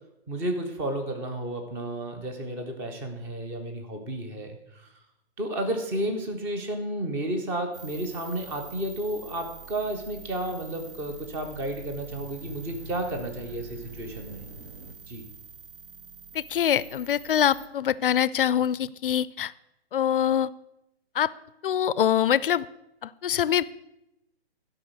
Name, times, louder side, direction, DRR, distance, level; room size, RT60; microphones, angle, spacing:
voice 1, 0.3-4.9 5.4-14.4 15.1-15.3, right 1 dB, 5° right, 5 dB, 0.4 m, -32 dB
sound 1, 7.7-17.7, right 6 dB, 55° right, 1.7 m, -46 dB
sound 2, 10.1-14.9, left 1 dB, 75° right, 1.6 m, -46 dB
voice 2, 16.3-19.5 19.9-20.5 21.2-21.3 21.6-22.7 23.0-23.6, left 9 dB, 55° left, 19 dB, 0.5 m, -24 dB
12.0 x 5.3 x 6.3 m, 0.86 s
figure-of-eight pair, 130°, 32 cm